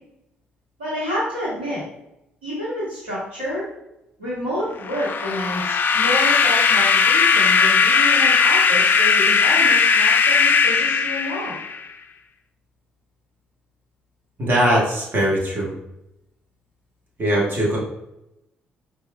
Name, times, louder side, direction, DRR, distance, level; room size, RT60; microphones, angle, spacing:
voice 1, 0.8-1.8 2.4-3.6 4.2-11.5, equal, 90° right, -9 dB, 1.2 m, -29 dB
sound 1, 4.8-11.9, left 6 dB, 45° left, 0.3 m, -18 dB
voice 2, 14.4-15.7 17.2-17.8, right 1 dB, 40° right, -4 dB, 1.2 m, -20 dB
4.5 x 2.4 x 2.3 m, 0.87 s
hypercardioid pair, 45°, 5 cm